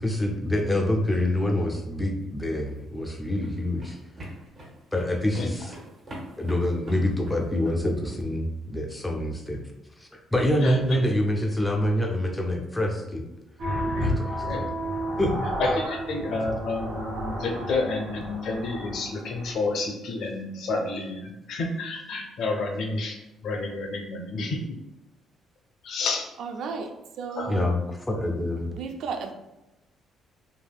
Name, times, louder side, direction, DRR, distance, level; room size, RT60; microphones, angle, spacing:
voice 1, 0.0-4.0 4.9-5.7 6.4-9.6 10.1-13.2 14.0-14.7 15.2-15.3 27.5-27.8 28.1-28.7, left 1 dB, 10° left, 2 dB, 0.4 m, -26 dB
sound 1, 2.5-8.2, equal, 30° right, 0.7 m, -44 dB
sound 2, 13.6-19.5, equal, 85° right, 1.4 m, -31 dB
voice 2, 15.6-23.2 23.4-24.8 25.8-26.3 27.4-27.6, left 3 dB, 60° left, 2 dB, 0.6 m, -30 dB
voice 3, 26.4-27.7 28.7-29.3, right 5 dB, 65° right, 5 dB, 0.3 m, -34 dB
3.3 x 2.6 x 2.3 m, 0.95 s
cardioid pair, 165°, 0 cm